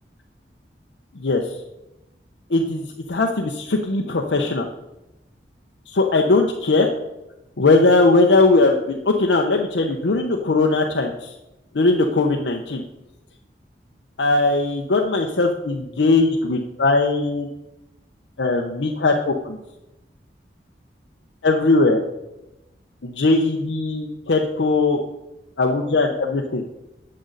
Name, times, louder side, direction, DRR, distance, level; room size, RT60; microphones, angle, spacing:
voice 1, 2.5-4.7 5.9-6.9 7.6-11.3 11.7-12.8 14.2-17.5 18.4-19.6 21.4-22.0 23.0-25.0 25.6-26.6, left 3 dB, 90° left, 1 dB, 0.7 m, -19 dB
10.5 x 7.6 x 3.9 m, 0.93 s
head